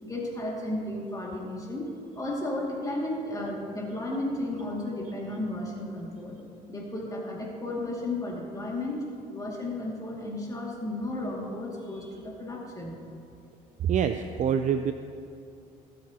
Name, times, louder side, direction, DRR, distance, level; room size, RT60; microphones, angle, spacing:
voice 1, 0.0-1.9 2.1-6.4 6.7-9.0 9.3-13.0, left 1 dB, 20° left, -2 dB, 2.3 m, -33 dB
voice 2, 13.8-14.9, right 8 dB, 50° right, 8 dB, 0.5 m, -25 dB
18.0 x 7.9 x 2.9 m, 2.6 s
supercardioid pair, 85°, 16 cm